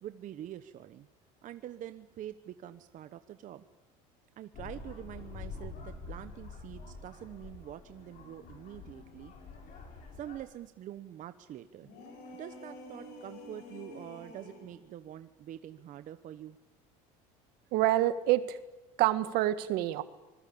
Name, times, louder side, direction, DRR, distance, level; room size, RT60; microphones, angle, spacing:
voice 1, 0.0-1.1 1.4-3.6 4.4-9.3 10.1-11.9 12.3-16.6, right 11 dB, 50° right, 10 dB, 1.1 m, -45 dB
sound 1, 4.5-10.4, left 4 dB, 55° left, 7.9 m, -46 dB
sound 2, 11.8-14.8, left 2 dB, 70° left, 7.8 m, -48 dB
voice 2, 17.7-18.6 19.0-20.0, right 14 dB, 70° right, 12 dB, 1.8 m, -27 dB
25.5 x 20.5 x 8.7 m, 1.1 s
supercardioid pair, 105°, 17 cm